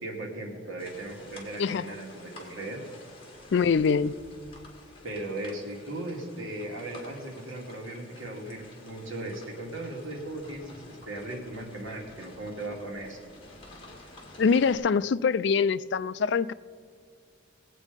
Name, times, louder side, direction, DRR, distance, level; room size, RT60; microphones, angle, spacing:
voice 1, 0.0-2.8 5.0-13.2, right 1 dB, 80° right, 2.4 m, -37 dB
sound 1, 0.8-14.8, left 2 dB, 25° left, 2.2 m, -50 dB
voice 2, 3.5-4.2 14.4-16.5, left 5 dB, 60° left, 0.3 m, -24 dB
19.5 x 8.2 x 5.2 m
head